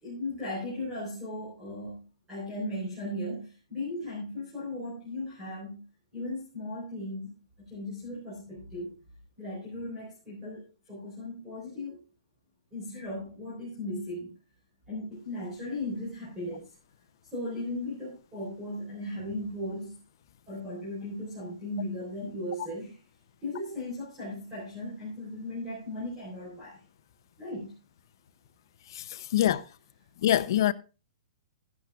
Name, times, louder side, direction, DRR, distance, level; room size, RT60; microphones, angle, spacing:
voice 1, 0.0-2.0 2.3-5.8 6.1-7.4 7.7-8.9 9.4-12.0 12.7-14.3 14.9-16.7 17.3-20.0 20.5-23.0 23.4-26.8 27.4-27.7, left 1 dB, 10° right, 4.0 m, -37 dB
voice 2, 28.9-29.7 30.2-30.7, left 12 dB, 40° left, 0.6 m, -25 dB
15.5 x 11.0 x 2.3 m
hypercardioid pair, 180°, 3 cm